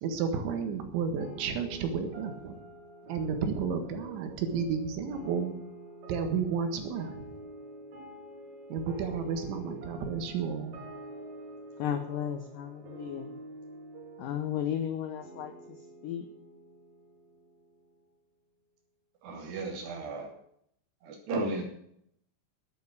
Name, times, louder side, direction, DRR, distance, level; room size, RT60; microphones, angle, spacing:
voice 1, 0.0-2.6 3.1-5.5 6.1-7.3 8.7-10.8, right 6 dB, 90° right, 6 dB, 4.1 m, -32 dB
sound 1, 1.2-18.0, right 1 dB, 45° right, 3.7 m, -47 dB
voice 2, 11.8-13.4 14.2-16.3, left 9 dB, 80° left, 8 dB, 1.9 m, -34 dB
voice 3, 19.2-20.3 21.0-21.6, right 2 dB, 70° right, 1 dB, 4.6 m, -34 dB
11.5 x 8.8 x 8.5 m, 0.71 s
omnidirectional pair, 5.1 m